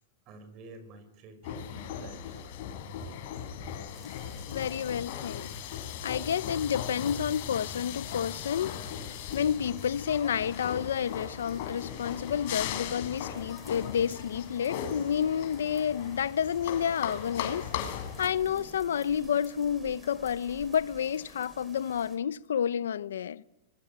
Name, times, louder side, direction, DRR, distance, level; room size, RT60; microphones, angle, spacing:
voice 1, 0.3-2.4 3.0-3.1 3.6-3.8, right 4 dB, 40° right, 6.6 m, -48 dB
sound 1, 1.4-18.3, left 9 dB, 60° left, 5.3 m, -38 dB
sound 2, 3.9-22.2, right 2 dB, 15° right, 5.7 m, -54 dB
voice 2, 4.5-5.5 6.0-8.8 9.3-17.7 18.2-23.4, left 8 dB, 90° left, 0.9 m, -30 dB
26.0 x 23.0 x 9.0 m
hypercardioid pair, 130°, 0 cm